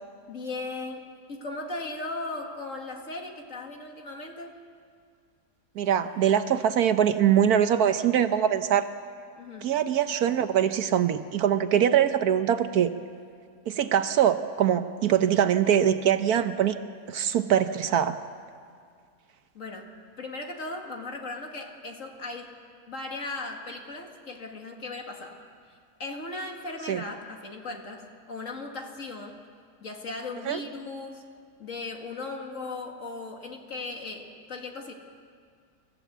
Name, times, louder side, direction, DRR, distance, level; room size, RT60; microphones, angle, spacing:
voice 1, 0.3-4.5 9.4-9.8 19.5-22.5 22.9-25.4 26.0-29.4 29.8-31.2 31.6-34.9, left 2 dB, 50° left, 2 dB, 2.3 m, -37 dB
voice 2, 5.8-8.9 9.6-12.9 13.7-16.8 17.1-18.2 26.9-27.0 30.5-30.6, right 9 dB, 70° right, 10 dB, 1.2 m, -23 dB
27.0 x 14.5 x 8.1 m, 2.2 s
omnidirectional pair, 1.8 m